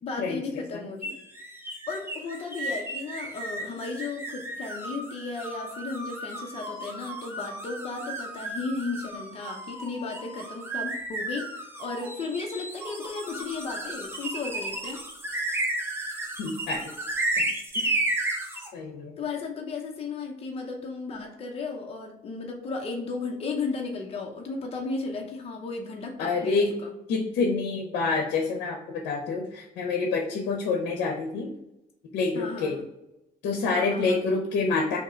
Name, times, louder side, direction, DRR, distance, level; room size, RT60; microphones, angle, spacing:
voice 1, 0.0-1.2 1.9-15.0 17.9-18.0 19.2-26.9 32.3-32.8 33.7-34.2, left 4 dB, 35° left, 2 dB, 0.6 m, -35 dB
sound 1, 1.0-18.7, right 2 dB, 15° right, 0.8 m, -33 dB
voice 2, 16.4-16.8 17.3-17.4 17.7-18.0 18.7-19.1 26.2-26.7 27.1-31.5 32.1-32.8 33.4-35.0, left 4 dB, 75° left, 2 dB, 0.7 m, -27 dB
3.6 x 2.8 x 4.3 m, 0.89 s
cardioid pair, 110°, 17 cm